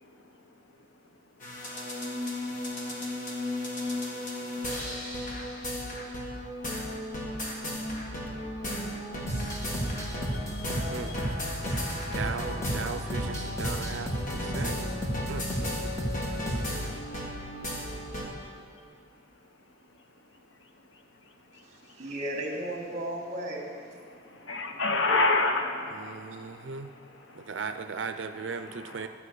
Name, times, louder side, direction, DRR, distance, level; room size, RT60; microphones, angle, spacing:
sound 1, 1.4-18.2, left 1 dB, 45° left, 1.7 m, -35 dB
sound 2, 9.3-16.9, equal, 15° left, 1.6 m, -33 dB
voice 1, 9.9-11.3 24.1-27.5 28.6-29.1, left 3 dB, 75° left, 4 dB, 1.1 m, -31 dB
voice 2, 12.1-14.8 15.3-16.1 25.9-26.9 27.3-29.1, right 5 dB, 70° right, 9 dB, 0.5 m, -37 dB
voice 3, 21.6-23.6, right 1 dB, 40° right, 0 dB, 2.0 m, -35 dB
11.5 x 5.8 x 8.1 m, 2.4 s
head